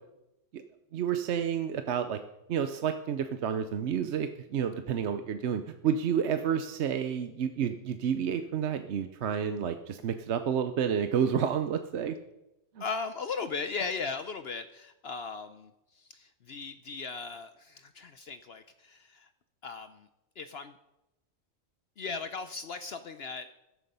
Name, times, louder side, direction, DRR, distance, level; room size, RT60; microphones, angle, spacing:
voice 1, 0.9-2.2 2.5-12.2 12.8-12.9, right 8 dB, 65° right, 9 dB, 0.9 m, -30 dB
voice 2, 12.8-19.3 19.6-20.1 20.4-20.7 22.0-23.5, left 4 dB, 60° left, 10 dB, 0.8 m, -37 dB
14.0 x 11.5 x 5.4 m, 0.93 s
omnidirectional pair, 1.3 m